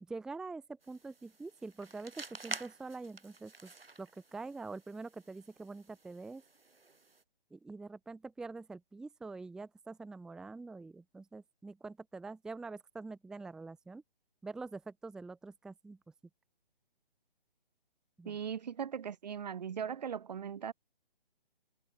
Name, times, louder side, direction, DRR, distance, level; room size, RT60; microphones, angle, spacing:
voice 1, 0.0-3.7 4.0-6.4 7.5-14.0 14.4-16.0 18.2-18.4, right 3 dB, ahead, 0.9 m, -45 dB
sound 1, 0.8-7.2, right 3 dB, 80° right, 2.9 m, -49 dB
voice 2, 18.2-20.7, right 7 dB, 45° right, 1.6 m, -39 dB
figure-of-eight pair, 145°, 29 cm